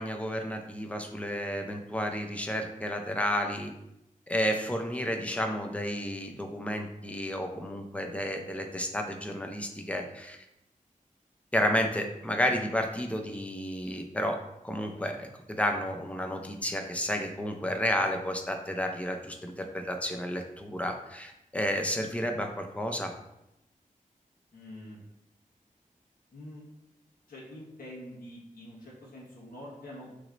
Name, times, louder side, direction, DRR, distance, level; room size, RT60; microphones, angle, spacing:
voice 1, 0.0-3.7 4.3-10.4 11.5-14.4 14.6-23.1, equal, 10° left, 4 dB, 0.5 m, -31 dB
voice 2, 24.5-25.0 26.3-26.6 27.3-30.1, left 1 dB, 85° left, -5 dB, 1.4 m, -45 dB
6.1 x 3.1 x 2.6 m, 0.85 s
wide cardioid pair, 115°, 14 cm